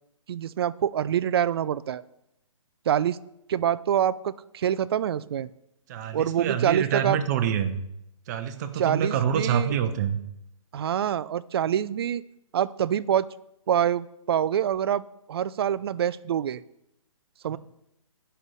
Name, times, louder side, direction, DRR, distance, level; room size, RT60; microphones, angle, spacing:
voice 1, 0.3-2.0 2.9-3.2 3.5-5.5 6.1-7.2 8.8-9.7 10.7-12.2 12.5-13.3 13.7-15.0 15.3-16.6 17.4-17.6, right 9 dB, 50° right, 17 dB, 0.4 m, -25 dB
voice 2, 5.9-7.8 8.3-10.2 17.5-17.6, right 8 dB, 30° right, 9 dB, 0.8 m, -26 dB
9.9 x 5.6 x 6.3 m, 0.82 s
hypercardioid pair, 145°, 17 cm